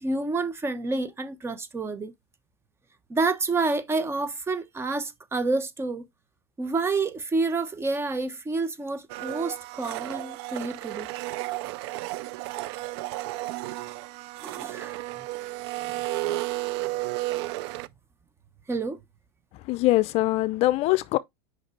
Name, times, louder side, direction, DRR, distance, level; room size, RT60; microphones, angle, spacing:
voice 1, 0.0-2.1 3.1-6.0 6.6-11.1 14.4-15.0 15.8-16.0 18.7-19.0, right 3 dB, 20° right, 1.1 m, -29 dB
Domestic sounds home sounds, 9.1-17.9, right 18 dB, 70° right, 0.5 m, -33 dB
voice 2, 19.7-21.2, left 18 dB, 50° left, 0.5 m, -22 dB
6.4 x 5.2 x 3.2 m
supercardioid pair, 110°, 14 cm